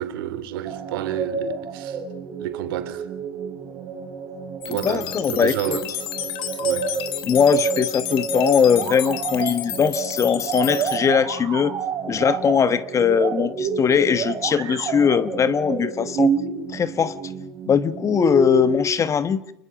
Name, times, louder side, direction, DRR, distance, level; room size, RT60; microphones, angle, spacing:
voice 1, 0.0-2.0 2.4-3.1 4.7-5.9 6.6-6.9, right 12 dB, 65° right, 3.4 m, -30 dB
sound 1, 0.7-18.8, right 6 dB, 35° right, 4.4 m, -29 dB
sound 2, 4.6-11.0, left 12 dB, 45° left, 3.3 m, -31 dB
voice 2, 4.8-5.8 7.3-11.8 12.1-16.3 16.7-17.2 17.7-19.4, left 7 dB, 25° left, 1.2 m, -20 dB
29.5 x 21.0 x 5.9 m
hypercardioid pair, 105°, 13 cm